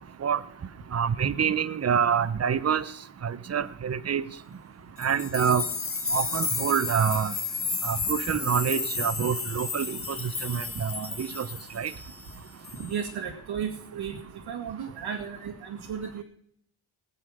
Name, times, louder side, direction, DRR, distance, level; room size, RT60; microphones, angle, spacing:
voice 1, 0.9-2.8 3.2-4.2 5.0-5.6 6.1-7.3 7.8-11.5 11.8-11.9, right 7 dB, 30° right, 0.9 m, -26 dB
sound 1, 5.0-12.4 12.6-13.0, left 4 dB, 25° left, 1.7 m, -32 dB
voice 2, 12.8-14.2 14.5-16.2, right 7 dB, 70° right, 2.2 m, -34 dB
20.0 x 7.3 x 6.4 m
supercardioid pair, 60°, 48 cm